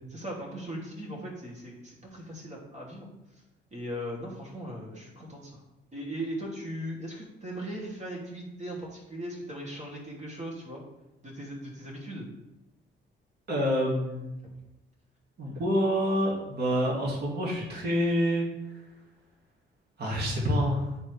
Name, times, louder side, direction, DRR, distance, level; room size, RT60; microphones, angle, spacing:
voice 1, 0.1-3.1 3.7-5.6 5.9-10.8 11.2-12.3, equal, 35° right, -3 dB, 2.7 m, -38 dB
voice 2, 13.5-14.4 15.4-18.5 20.0-20.8, equal, 55° right, -3 dB, 2.2 m, -27 dB
9.6 x 4.4 x 3.4 m, 0.96 s
cardioid pair, 90°, 20 cm